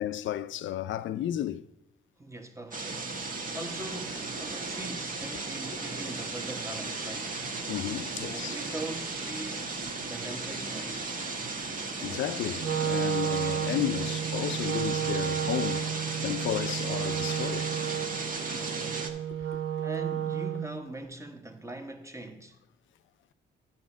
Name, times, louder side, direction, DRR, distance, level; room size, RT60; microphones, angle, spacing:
voice 1, 0.0-1.6 7.7-8.6 12.0-15.9 16.2-17.7 19.3-19.4, left 12 dB, 70° left, 0.5 m, -33 dB
voice 2, 2.2-7.4 8.2-11.2 18.4-22.6, right 2 dB, 15° right, 1.2 m, -42 dB
sound 1, 2.7-19.1, right 3 dB, 40° right, 1.3 m, -35 dB
Wind instrument woodwind instrument, 12.6-20.8, right 9 dB, 70° right, 1.0 m, -32 dB
9.5 x 4.3 x 6.1 m
cardioid pair, 65°, 21 cm